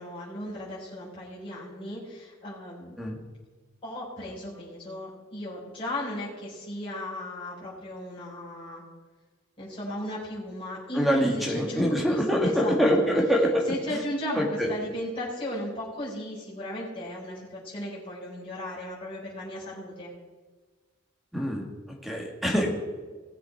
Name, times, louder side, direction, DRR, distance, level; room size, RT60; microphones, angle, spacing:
voice 1, 0.0-3.0 3.8-8.8 9.6-13.1 13.7-20.1, left 1 dB, 25° left, -7 dB, 4.2 m, -36 dB
voice 2, 10.9-14.0 14.3-14.7 21.3-21.7 22.0-22.8, equal, ahead, -1 dB, 2.0 m, -25 dB
18.5 x 7.6 x 4.5 m, 1.4 s
head